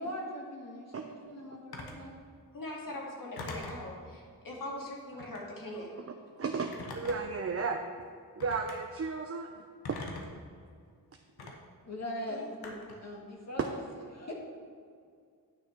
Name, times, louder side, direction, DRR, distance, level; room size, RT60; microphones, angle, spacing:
voice 1, 0.0-2.1 11.9-12.7 13.0-13.8 14.1-14.3, left 1 dB, 45° left, -2 dB, 1.9 m, -40 dB
Telephone, 1.7-2.0 3.4-3.9 5.1-5.5 6.7-7.4 8.4-8.8 9.8-10.4 11.4-11.5 12.6-13.0, left 2 dB, 85° left, 1.2 m, -42 dB
voice 2, 2.5-3.9 4.4-5.9 12.3-12.7, left 1 dB, 60° left, -2 dB, 2.3 m, -41 dB
voice 3, 6.0-7.8 8.4-10.0 13.6-13.7, right 5 dB, 40° right, 3 dB, 0.7 m, -34 dB
9.8 x 6.2 x 4.6 m, 2.2 s
cardioid pair, 65°, 37 cm